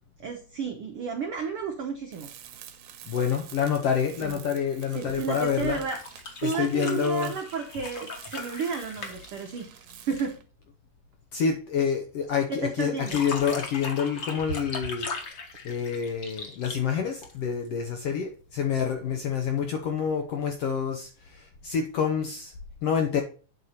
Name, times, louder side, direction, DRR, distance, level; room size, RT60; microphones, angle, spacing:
voice 1, 0.2-2.3 4.2-4.4 4.9-6.0 6.4-9.7 10.1-10.4 12.5-13.2, right 5 dB, 90° right, 1.2 m, -32 dB
Tools, 2.1-10.5, right 11 dB, 70° right, 2.0 m, -48 dB
voice 2, 3.0-5.8 6.4-7.4 11.3-15.1 15.6-22.5 22.8-23.2, left 7 dB, 75° left, 1.4 m, -27 dB
sound 1, 5.8-10.4 12.8-17.7 19.1-19.2, left 3 dB, 50° left, 1.5 m, -38 dB
8.4 x 4.2 x 6.5 m
omnidirectional pair, 3.8 m